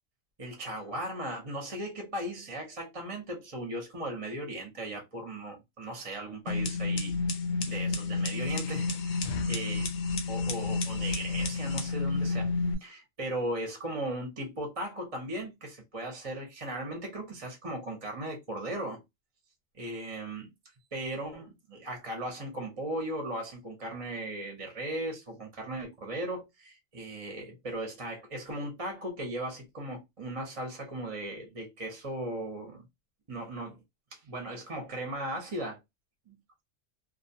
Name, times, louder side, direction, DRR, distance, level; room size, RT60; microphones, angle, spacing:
voice 1, 0.4-7.2 7.7-9.8 10.3-12.5 12.8-19.0 19.8-20.5 20.9-32.8 33.3-33.8 34.1-35.8, right 1 dB, 35° right, 0.7 m, -37 dB
sound 1, 6.5-12.7, left 3 dB, 60° left, 0.7 m, -30 dB
2.4 x 2.2 x 2.6 m
omnidirectional pair, 1.3 m